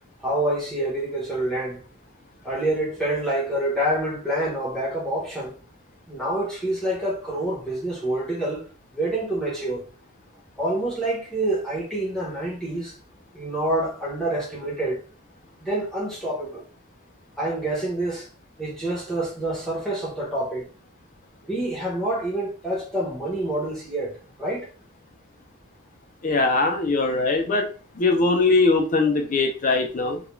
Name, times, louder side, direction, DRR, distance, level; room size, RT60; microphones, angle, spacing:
voice 1, 0.2-1.8 2.4-5.5 6.1-8.7 8.9-9.9 10.6-13.0 13.3-15.0 15.6-16.6 17.4-18.3 18.6-20.7 21.4-24.7, right 1 dB, ahead, 0.7 m, -27 dB
voice 2, 26.2-27.7 28.0-30.2, left 3 dB, 35° left, 0.4 m, -21 dB
2.3 x 2.3 x 3.0 m
head